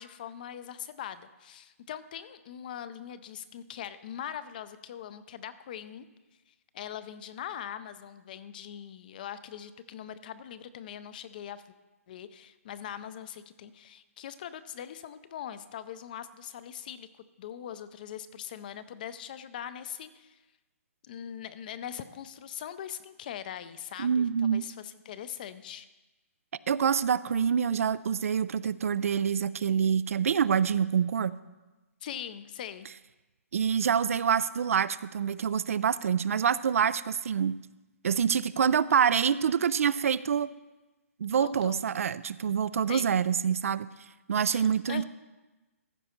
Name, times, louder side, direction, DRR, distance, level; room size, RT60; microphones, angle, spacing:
voice 1, 0.0-6.1 6.5-11.6 12.1-20.4 21.0-25.9 32.0-32.9 41.4-41.8 42.9-43.1 44.5-45.0, left 9 dB, 35° left, 13 dB, 0.5 m, -41 dB
voice 2, 24.0-24.7 26.7-31.4 33.5-37.5 38.0-40.5 41.2-43.9 44.3-45.0, right 7 dB, 65° right, 17 dB, 0.3 m, -26 dB
14.5 x 5.4 x 4.4 m, 1.1 s
hypercardioid pair, 160°, 8 cm